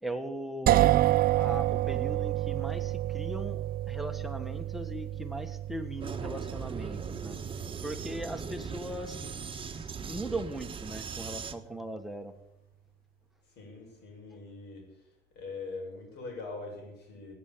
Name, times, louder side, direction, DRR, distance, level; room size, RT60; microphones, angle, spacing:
voice 1, 0.0-1.0 1.3-7.4 7.8-9.2 9.8-12.3, right 1 dB, ahead, 9 dB, 1.6 m, -39 dB
sound 1, 0.7-10.4, right 14 dB, 55° right, 0.6 m, -30 dB
Vehicle, 6.0-11.5, right 6 dB, 30° right, 1.4 m, -39 dB
voice 2, 13.4-15.1 15.3-17.3, left 3 dB, 70° left, 1 dB, 7.6 m, -42 dB
19.5 x 9.4 x 7.4 m, 0.87 s
cardioid pair, 110°, 18 cm